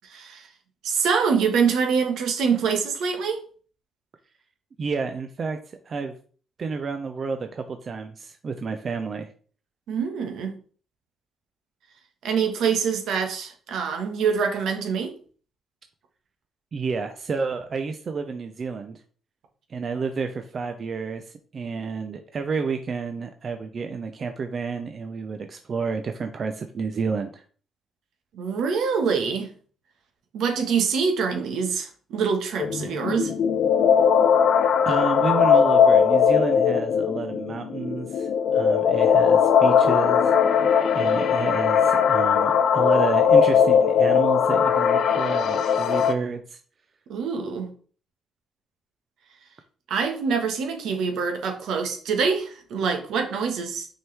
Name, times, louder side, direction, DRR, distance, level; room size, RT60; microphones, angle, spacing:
voice 1, 0.0-0.5 0.8-3.4 9.9-10.5 12.2-15.1 28.3-29.5 30.3-33.3 47.1-47.7 49.9-53.9, right 6 dB, 80° right, 4 dB, 1.4 m, -25 dB
voice 2, 4.8-5.6 5.9-6.1 6.6-9.3 16.7-19.0 19.7-27.4 34.9-40.3 40.9-46.6, right 5 dB, 45° right, 6 dB, 0.6 m, -30 dB
sound 1, 32.6-46.1, left 7 dB, 65° left, 0.6 m, -19 dB
6.2 x 4.6 x 3.4 m, 0.42 s
cardioid pair, 90°, 0 cm